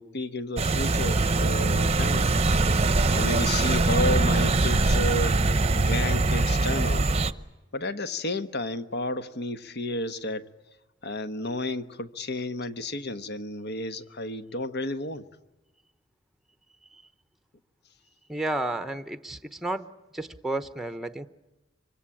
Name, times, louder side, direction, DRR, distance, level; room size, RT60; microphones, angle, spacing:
voice 1, 0.0-2.3 3.1-5.4 5.7-7.1 7.7-10.5 11.0-15.3, left 2 dB, 60° left, 10 dB, 1.3 m, -32 dB
sound 1, 0.6-7.3, right 3 dB, 30° right, 0.8 m, -23 dB
voice 2, 18.3-21.3, right 2 dB, ahead, 9 dB, 0.9 m, -32 dB
25.0 x 24.5 x 8.6 m, 1.1 s
head